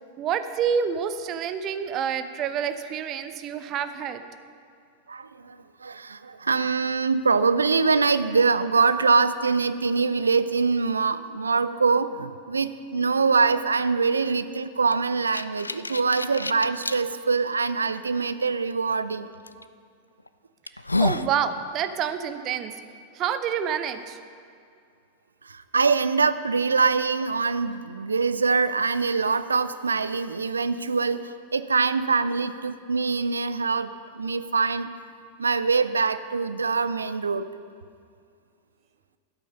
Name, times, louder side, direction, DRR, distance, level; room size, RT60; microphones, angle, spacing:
voice 1, 0.2-4.2 21.0-22.7 23.1-24.2, right 8 dB, 35° right, 10 dB, 0.7 m, -28 dB
voice 2, 5.1-5.6 5.8-19.3 25.5-33.9 34.2-34.9 35.4-37.5, right 4 dB, 75° right, 13 dB, 0.4 m, -24 dB
sound 1, 14.9-17.0 17.6-17.7 19.5-19.6 20.2-20.3 20.7-21.3, left 2 dB, 85° left, 0.3 m, -28 dB
12.5 x 8.5 x 5.4 m, 2.3 s
figure-of-eight pair, 90°, 0 cm